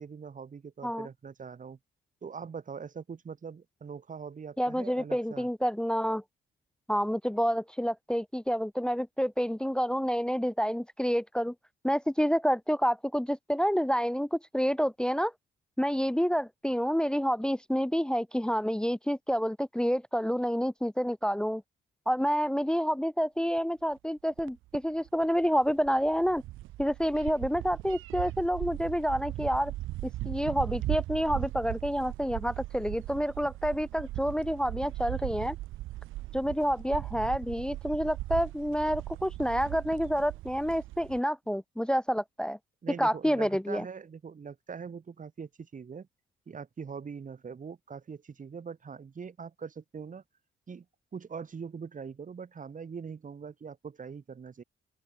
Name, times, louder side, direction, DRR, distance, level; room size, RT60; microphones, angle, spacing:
voice 1, 0.0-1.8 2.2-5.5 42.8-46.1 46.5-50.2 50.7-50.9 51.1-54.6, right 6 dB, 40° right, 5.4 m, -42 dB
voice 2, 4.6-6.2 6.9-11.5 11.8-15.3 15.8-21.6 22.1-26.4 26.8-29.7 30.0-35.6 36.3-42.6 43.0-43.8, equal, 5° left, 0.7 m, -28 dB
sound 1, 23.6-23.7 24.4-24.5 24.7-24.8 25.1-41.2, right 16 dB, 85° right, 0.7 m, -38 dB
open air
cardioid pair, 90°, 20 cm